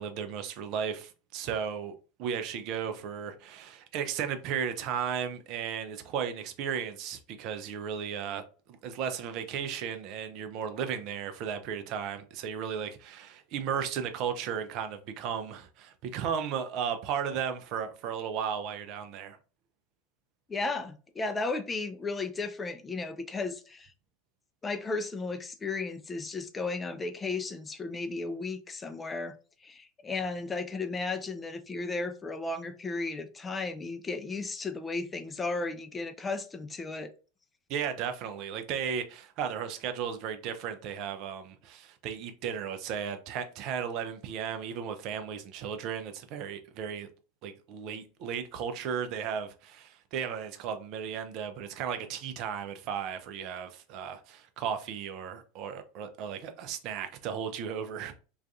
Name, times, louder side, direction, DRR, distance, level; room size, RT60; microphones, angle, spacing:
voice 1, 0.0-8.4 8.8-19.4 37.7-47.1 47.4-58.1, right 7 dB, 45° right, 0.4 m, -35 dB
voice 2, 20.5-23.9 24.6-29.4 29.6-37.1, left 3 dB, 15° left, 0.4 m, -34 dB
2.3 x 2.3 x 2.6 m
figure-of-eight pair, 85°, 0 cm